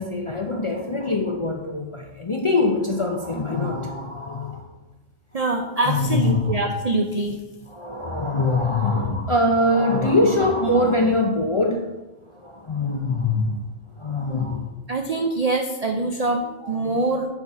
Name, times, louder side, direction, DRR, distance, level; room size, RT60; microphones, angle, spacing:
voice 1, 0.0-4.7 5.4-6.6 7.7-11.9 12.3-13.5 14.0-14.7 16.4-17.0, left 2 dB, 40° left, 0 dB, 0.4 m, -23 dB
voice 2, 5.3-7.4 14.9-16.4 16.7-17.3, right 2 dB, 60° right, 3 dB, 0.4 m, -24 dB
7.1 x 4.1 x 4.8 m, 1.1 s
omnidirectional pair, 1.3 m